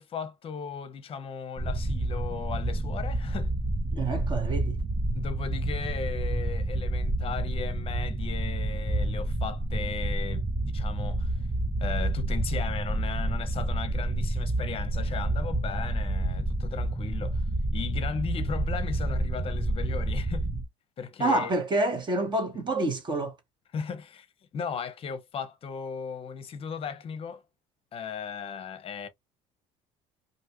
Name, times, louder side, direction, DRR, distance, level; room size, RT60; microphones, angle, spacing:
voice 1, 0.0-3.5 5.1-11.4 11.8-17.4 17.7-20.5 21.0-21.5 23.7-24.3 24.5-27.4 27.9-29.1, left 6 dB, 40° left, 0.7 m, -36 dB
sound 1, 1.6-20.7, right 2 dB, 5° right, 0.5 m, -29 dB
voice 2, 3.9-4.8 21.2-23.3, right 2 dB, 35° right, 1.2 m, -27 dB
2.6 x 2.3 x 2.8 m
supercardioid pair, 85°, 14 cm